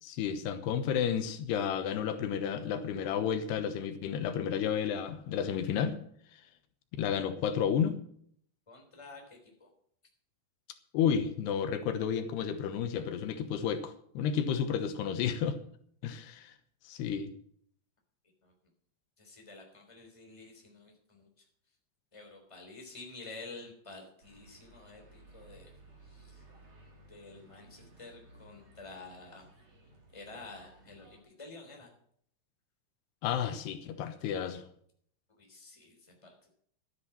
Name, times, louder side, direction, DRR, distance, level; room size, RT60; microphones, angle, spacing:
voice 1, 0.0-6.0 7.0-8.0 10.9-15.6 16.0-16.5 16.8-17.3 33.2-34.6, left 8 dB, 90° left, 9 dB, 3.2 m, -31 dB
voice 2, 8.7-9.7 18.4-18.5 19.2-21.4 22.1-25.7 26.0-26.5 27.1-29.5 30.1-31.9 35.3-36.5, left 3 dB, 10° left, 2 dB, 3.0 m, -50 dB
sound 1, 24.2-31.2, right 2 dB, 40° right, 4.2 m, -58 dB
13.0 x 10.5 x 5.9 m, 0.63 s
omnidirectional pair, 4.6 m